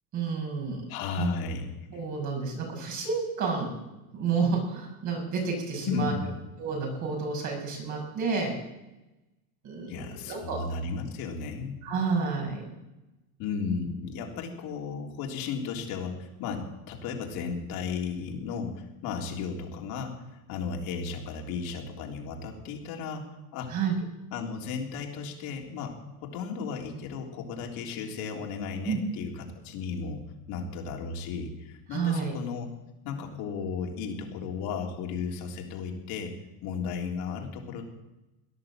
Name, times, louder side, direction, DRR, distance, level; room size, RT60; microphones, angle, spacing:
voice 1, 0.1-0.8 1.2-1.3 1.9-3.7 4.1-6.1 6.6-8.5 9.6-10.6 11.8-12.7 23.7-23.9 28.8-29.0 31.9-32.3, right 5 dB, 40° right, 0 dB, 6.4 m, -30 dB
voice 2, 0.9-2.0 5.9-6.3 9.9-11.8 13.4-20.1 20.5-23.2 23.5-23.7 24.3-30.2 30.5-32.7 33.0-36.3 36.6-37.8, left 5 dB, 50° left, 1 dB, 3.6 m, -34 dB
18.0 x 10.5 x 7.5 m, 1.0 s
supercardioid pair, 140°, 44 cm